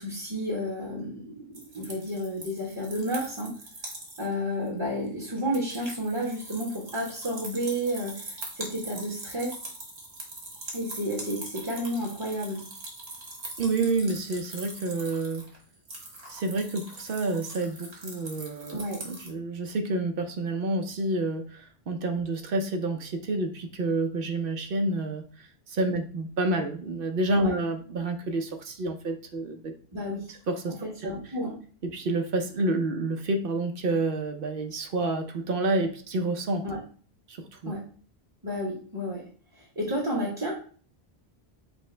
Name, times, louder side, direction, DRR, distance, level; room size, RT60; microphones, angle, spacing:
voice 1, 0.0-3.5 4.2-9.6 10.7-12.7 18.7-19.0 27.4-27.5 29.9-30.3 30.8-31.6 36.6-36.8 37.6-37.8 38.4-39.3 39.6-40.5, equal, 20° right, -3 dB, 1.1 m, -31 dB
sound 1, 1.5-4.3 4.7-4.8 5.1-19.3, right 2 dB, 85° right, 1.5 m, -42 dB
voice 2, 13.6-15.5 16.3-29.7 30.5-31.1 31.8-36.7 37.3-37.7, right 2 dB, 60° right, 5 dB, 0.8 m, -29 dB
5.9 x 2.1 x 4.3 m, 0.43 s
omnidirectional pair, 1.1 m